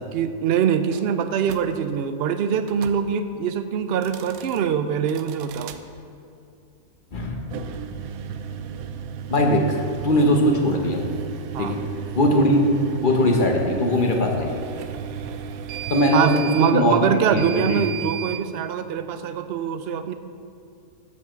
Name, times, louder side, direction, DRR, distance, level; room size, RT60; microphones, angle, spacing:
voice 1, 0.1-5.7 11.5-11.8 16.1-20.1, right 8 dB, 65° right, 10 dB, 0.6 m, -23 dB
sound 1, 1.4-1.7 2.6-3.0 3.9-4.6 5.1-5.8 7.4-18.4, right 8 dB, 80° right, 1.0 m, -35 dB
voice 2, 9.3-9.8 10.0-11.0 11.6-11.8 12.1-12.6 13.0-14.5 15.9-17.8, left 1 dB, 40° left, 1 dB, 1.1 m, -20 dB
7.3 x 7.0 x 6.9 m, 2.6 s
omnidirectional pair, 1.5 m